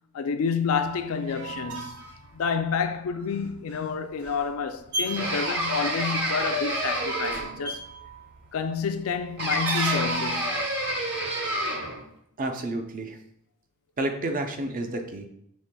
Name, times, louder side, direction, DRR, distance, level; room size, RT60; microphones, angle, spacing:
voice 1, 0.1-2.1 2.3-7.9 8.5-10.6, left 6 dB, 75° left, 0.4 m, -29 dB
sound 1, 0.7-10.4, right 3 dB, 85° right, 0.7 m, -37 dB
sound 2, 5.2-7.7 9.4-12.0, right 1 dB, 55° right, 1.0 m, -29 dB
voice 2, 12.4-13.2 14.0-15.3, right 2 dB, 40° right, 0.5 m, -30 dB
6.2 x 3.3 x 2.2 m
head